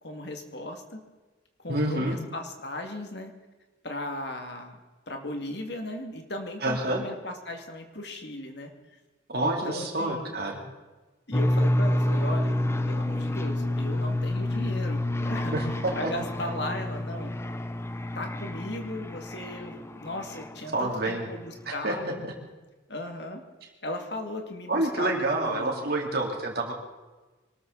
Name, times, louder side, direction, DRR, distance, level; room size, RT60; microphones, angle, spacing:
voice 1, 0.0-1.0 1.6-3.3 3.8-4.8 5.1-8.7 9.4-10.4 11.3-12.6 12.9-17.3 18.1-22.2 22.9-23.4 23.8-25.9, left 1 dB, 60° left, 4 dB, 2.3 m, -37 dB
voice 2, 1.7-2.1 6.6-7.0 9.3-10.6 15.5-16.1 20.7-21.3 21.8-22.1 24.7-26.7, right 2 dB, 55° right, 1 dB, 3.3 m, -28 dB
sound 1, 11.3-20.9, left 1 dB, 15° left, 0.6 m, -28 dB
24.5 x 13.5 x 4.1 m, 1.2 s
head